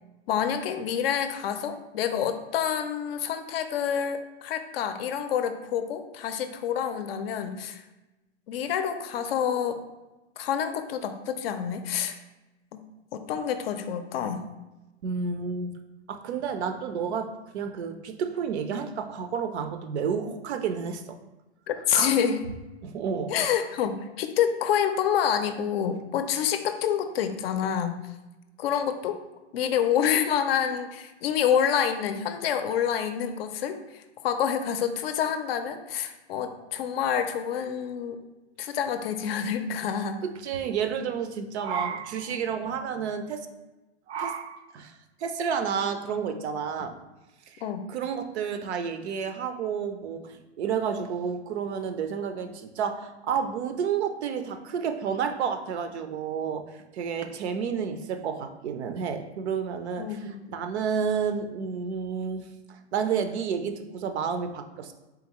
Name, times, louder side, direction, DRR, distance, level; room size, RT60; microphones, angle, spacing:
voice 1, 0.3-7.8 8.5-9.8 10.4-12.2 12.7-12.8 13.1-14.4 21.7-22.4 23.3-28.0 28.6-29.2 29.5-38.2 38.6-40.2 47.6-47.8 60.0-60.4, left 8 dB, 60° left, 8 dB, 0.5 m, -27 dB
voice 2, 15.0-15.7 16.1-21.2 21.9-22.1 22.8-23.5 40.2-43.5 44.1-46.9 47.5-47.6 47.9-56.6 56.9-62.5 62.9-64.9, right 6 dB, 75° right, 7 dB, 0.6 m, -30 dB
3.8 x 3.4 x 2.9 m, 1.1 s
hypercardioid pair, 125°, 34 cm